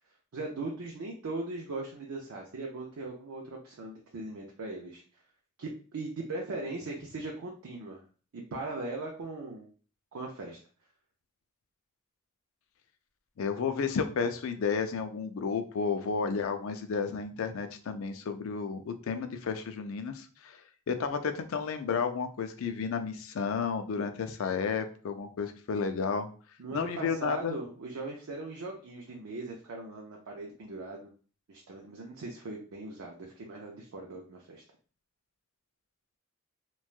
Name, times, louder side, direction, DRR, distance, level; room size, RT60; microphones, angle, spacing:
voice 1, 0.3-5.0 5.6-8.0 8.3-9.7 10.1-10.6 26.6-31.0 31.5-34.6, right 2 dB, 75° right, -1 dB, 0.5 m, -39 dB
voice 2, 13.4-20.6 20.9-26.3 26.7-27.6, left 5 dB, 70° left, 8 dB, 0.4 m, -32 dB
3.1 x 2.2 x 2.4 m, 0.39 s
head